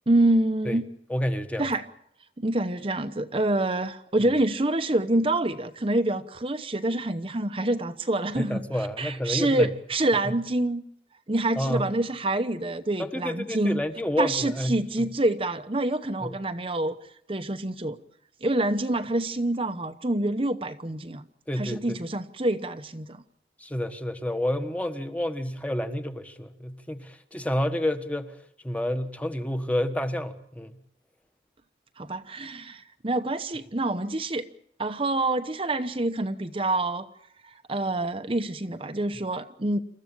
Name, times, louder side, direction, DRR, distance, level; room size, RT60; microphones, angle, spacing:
voice 1, 0.1-0.9 1.6-1.8 2.4-8.6 9.0-10.8 11.3-13.8 14.2-16.9 17.3-18.0 18.4-21.2 21.6-23.2 32.0-34.4 34.8-37.1 37.4-39.8, right 2 dB, 30° right, 0.9 m, -26 dB
voice 2, 1.1-1.7 4.2-4.3 8.4-9.7 11.6-11.9 13.0-15.1 16.2-16.3 21.5-22.0 23.6-28.4 28.6-30.8, left 1 dB, 10° left, 1.2 m, -29 dB
27.5 x 14.0 x 8.8 m
head